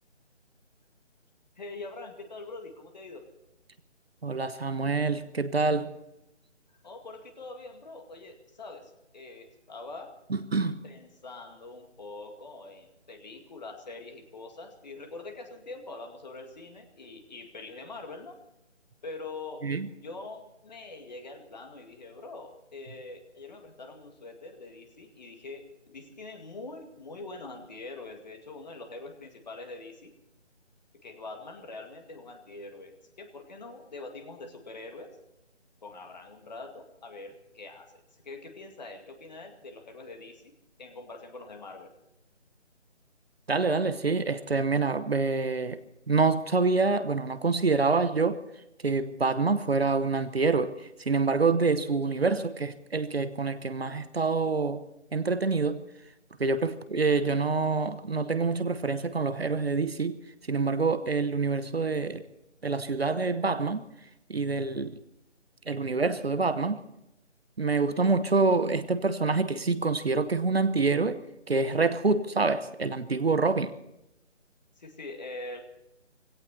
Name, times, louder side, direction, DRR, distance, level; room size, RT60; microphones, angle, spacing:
voice 1, 1.6-3.2 6.8-10.1 10.8-18.4 19.0-19.7 20.0-30.1 31.0-35.1 35.8-37.9 38.2-40.5 40.8-41.9 74.8-75.6, left 3 dB, 35° left, 2.2 m, -44 dB
voice 2, 4.2-5.9 10.3-10.8 19.6-19.9 43.5-45.8 46.1-48.4 48.8-50.7 51.0-54.8 55.1-55.8 56.4-60.2 60.5-62.2 62.6-63.9 64.3-65.0 65.7-66.8 67.6-71.2 71.5-73.7, right 4 dB, 55° right, 1.1 m, -26 dB
19.0 x 17.0 x 4.3 m
figure-of-eight pair, 155°, 36 cm